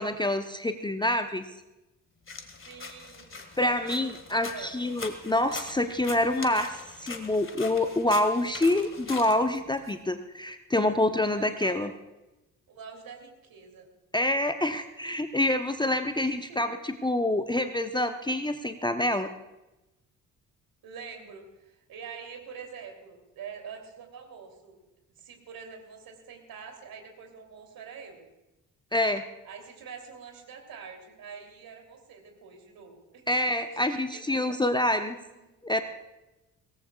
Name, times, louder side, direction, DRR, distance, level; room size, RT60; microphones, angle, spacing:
voice 1, 0.0-1.5 3.6-11.9 14.1-19.3 28.9-29.2 33.3-35.2 35.6-35.8, left 1 dB, 10° left, 8 dB, 0.8 m, -27 dB
sound 1, 2.3-9.9, left 4 dB, 30° left, 2.0 m, -42 dB
voice 2, 2.6-4.8 11.3-12.0 12.7-13.9 16.2-16.7 20.8-24.8 25.2-28.3 29.4-33.4 33.9-34.6 35.3-35.5, right 6 dB, 55° right, 3 dB, 3.2 m, -45 dB
23.5 x 18.0 x 2.4 m, 0.99 s
figure-of-eight pair, 40°, 43 cm